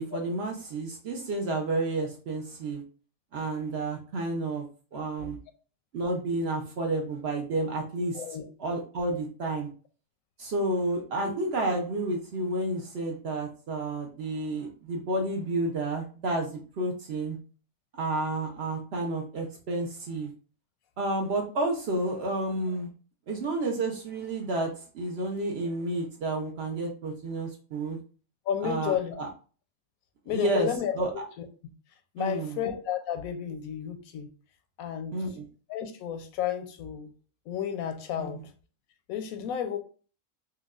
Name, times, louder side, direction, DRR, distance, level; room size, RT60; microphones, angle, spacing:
voice 1, 0.0-2.8 3.3-4.6 4.9-5.4 5.9-8.2 8.6-9.7 10.4-17.4 17.9-20.3 21.0-22.9 23.3-28.0 28.6-29.3 30.3-30.7 31.0-31.1 32.2-32.6 35.1-35.5 38.2-38.4, right 2 dB, 60° right, 1 dB, 0.7 m, -30 dB
voice 2, 28.5-29.2 30.3-31.5 32.1-34.3 34.8-35.1 35.7-37.1 37.5-38.4 39.1-39.8, left 9 dB, 90° left, 7 dB, 1.0 m, -32 dB
4.5 x 2.2 x 2.4 m, 0.38 s
omnidirectional pair, 1.5 m